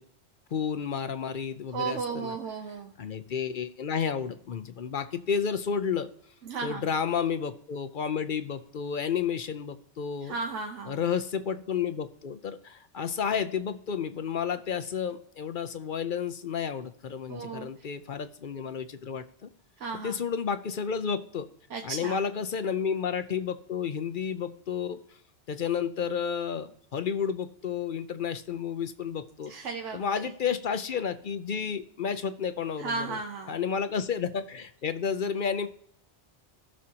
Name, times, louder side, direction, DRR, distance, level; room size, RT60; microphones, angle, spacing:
voice 1, 0.5-2.4 3.0-6.1 6.6-10.4 10.9-19.5 20.0-21.5 21.8-25.0 25.5-29.5 29.9-33.2 33.5-35.7, left 7 dB, 55° left, 11 dB, 0.7 m, -31 dB
voice 2, 1.7-2.9 6.5-6.9 10.2-11.0 17.3-17.7 19.8-20.2 21.7-22.3 29.5-30.3 32.8-33.6, right 4 dB, 85° right, 3 dB, 1.2 m, -35 dB
17.0 x 6.3 x 2.8 m, 0.66 s
omnidirectional pair, 1.2 m